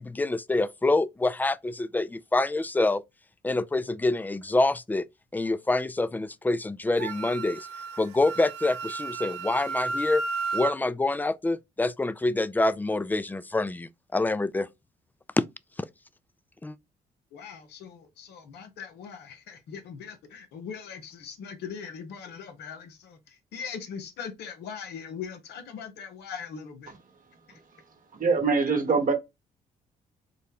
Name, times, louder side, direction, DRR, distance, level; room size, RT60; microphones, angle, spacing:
voice 1, 0.0-3.0 3.4-5.1 5.3-7.7 8.0-10.2 10.5-14.7 15.4-15.5 15.8-15.9 16.6-16.8, left 2 dB, 10° left, 0.3 m, -26 dB
Wind instrument woodwind instrument, 7.0-10.7, right 4 dB, 80° right, 0.7 m, -33 dB
voice 2, 17.3-26.9 27.5-27.6, left 6 dB, 75° left, 0.8 m, -40 dB
voice 3, 28.1-29.1, right 4 dB, 55° right, 1.0 m, -23 dB
3.7 x 2.1 x 3.4 m
supercardioid pair, 50°, 17 cm